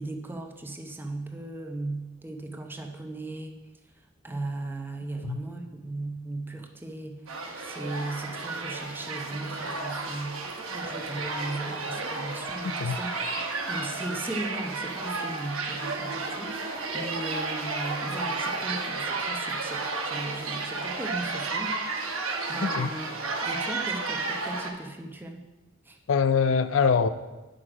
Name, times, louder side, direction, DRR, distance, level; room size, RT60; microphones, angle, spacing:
voice 1, 0.0-3.5 4.2-7.2 7.6-10.4 10.7-13.1 13.7-16.5 16.9-21.7 22.1-23.1 23.4-25.4 25.8-26.0, right 2 dB, 10° right, 3 dB, 0.8 m, -37 dB
sound 1, 7.3-24.7, right 3 dB, 80° right, 1.2 m, -32 dB
voice 2, 12.6-13.0 22.6-22.9 26.1-27.1, left 6 dB, 70° left, 11 dB, 0.4 m, -24 dB
9.4 x 6.3 x 4.9 m, 1.1 s
head